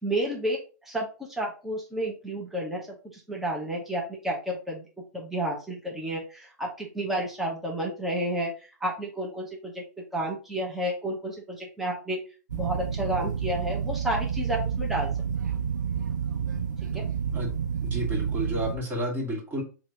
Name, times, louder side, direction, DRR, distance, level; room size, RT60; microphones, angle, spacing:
voice 1, 0.0-4.8 5.1-8.5 8.8-9.8 10.1-12.2 12.5-15.1 16.9-17.0, right 1 dB, ahead, 1.2 m, -31 dB
sound 1, 12.5-18.8, right 7 dB, 90° right, 0.5 m, -29 dB
voice 2, 17.9-19.6, equal, 20° right, 1.8 m, -31 dB
3.3 x 2.9 x 4.1 m
hypercardioid pair, 115°, 10 cm